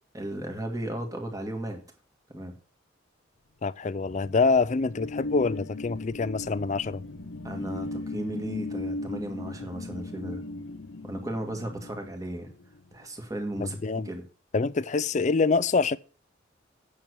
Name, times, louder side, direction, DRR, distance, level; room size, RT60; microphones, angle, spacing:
voice 1, 0.1-1.8 2.3-2.5 7.4-10.4 11.0-12.5 12.9-13.8 14.0-14.2, right 1 dB, 15° right, 1.9 m, -35 dB
voice 2, 3.6-7.0 13.6-14.1 14.5-16.0, left 4 dB, 35° left, 0.4 m, -25 dB
sound 1, 3.8-12.9, left 2 dB, 80° left, 1.1 m, -38 dB
9.1 x 6.9 x 6.2 m
head